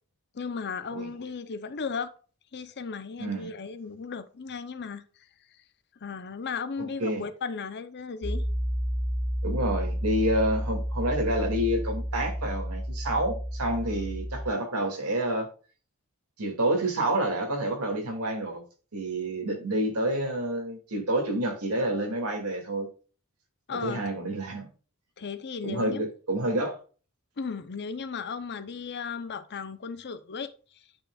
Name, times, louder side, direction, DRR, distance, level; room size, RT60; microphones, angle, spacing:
voice 1, 0.3-2.1 2.5-5.0 6.0-8.4 23.7-24.0 25.2-26.0 27.4-30.5, left 5 dB, 50° left, 0.7 m, -35 dB
voice 2, 3.2-3.5 7.0-7.2 9.4-15.5 16.4-18.6 18.9-22.9 23.7-24.7 25.6-26.8, right 1 dB, 80° right, 2.3 m, -28 dB
Piano, 8.2-14.5, equal, 10° left, 1.3 m, -31 dB
8.4 x 6.1 x 2.4 m
head